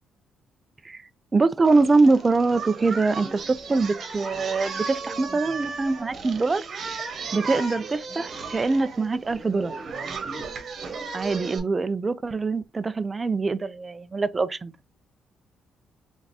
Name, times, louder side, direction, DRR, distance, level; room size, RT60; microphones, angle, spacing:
voice 1, 1.3-6.7 7.3-9.7 11.1-14.7, right 3 dB, 30° right, 0.4 m, -23 dB
Singing, 1.6-11.6, right 4 dB, 55° right, 1.2 m, -35 dB
3.8 x 3.5 x 2.7 m
cardioid pair, 90°, 0 cm